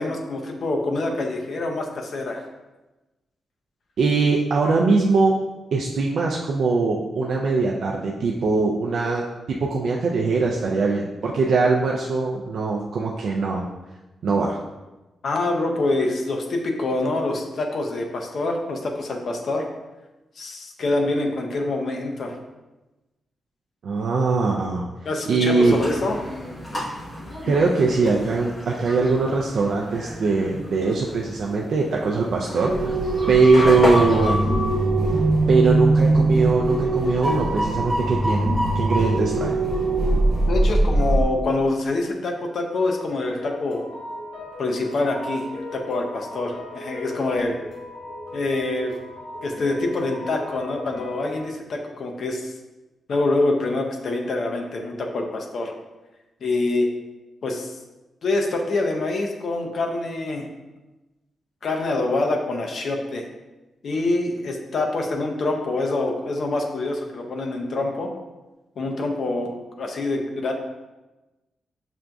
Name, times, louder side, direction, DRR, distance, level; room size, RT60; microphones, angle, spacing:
voice 1, 0.0-2.5 15.2-19.7 20.4-22.4 25.0-26.2 40.5-43.8 44.6-47.6 48.3-49.0 49.4-52.5 53.1-55.7 56.4-56.9 57.4-57.8 58.2-60.5 61.6-63.2 63.8-68.1 68.8-70.5, left 2 dB, 50° left, 2 dB, 0.5 m, -25 dB
voice 2, 4.0-5.3 5.7-9.3 9.6-13.7 14.2-14.6 23.8-24.9 25.3-25.8 27.5-33.0 33.3-34.4 35.5-39.6, right 3 dB, 55° right, -2 dB, 0.3 m, -21 dB
sound 1, 25.6-34.4, equal, 30° left, 0.9 m, -32 dB
sound 2, 32.7-41.2, right 2 dB, 20° right, 1.1 m, -21 dB
sound 3, 43.3-51.4, left 1 dB, 85° left, 1.0 m, -37 dB
5.9 x 2.5 x 2.2 m, 1.1 s
wide cardioid pair, 180°, 0 cm